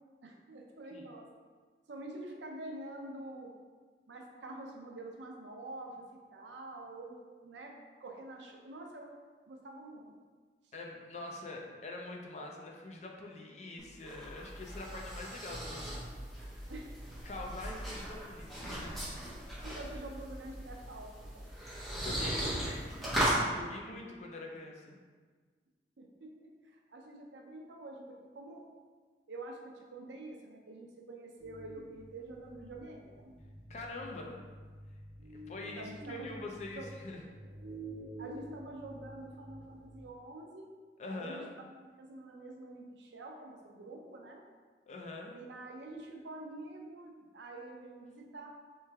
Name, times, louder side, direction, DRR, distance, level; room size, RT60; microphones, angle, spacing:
voice 1, 0.2-1.3 1.9-3.5 4.1-7.2 7.4-7.7 8.0-9.1 9.5-10.1 16.7-17.0 19.6-21.5 26.0-28.0 28.3-28.7 29.3-29.6 29.9-33.3 35.8-36.3 36.7-36.9 38.2-40.7 41.1-41.4 41.8-44.4 45.3-48.5, right 2 dB, 85° right, 1 dB, 0.6 m, -47 dB
voice 2, 10.7-16.0 17.2-19.1 21.9-22.9 23.5-25.0 33.7-34.4 35.5-37.2 41.0-41.5 44.9-45.3, left 2 dB, 40° left, 0 dB, 0.4 m, -44 dB
sound 1, 13.8-23.4, right 1 dB, ahead, 1.1 m, -37 dB
sound 2, 31.4-40.1, right 1 dB, 65° right, 0.9 m, -49 dB
3.3 x 3.1 x 3.4 m, 1.5 s
head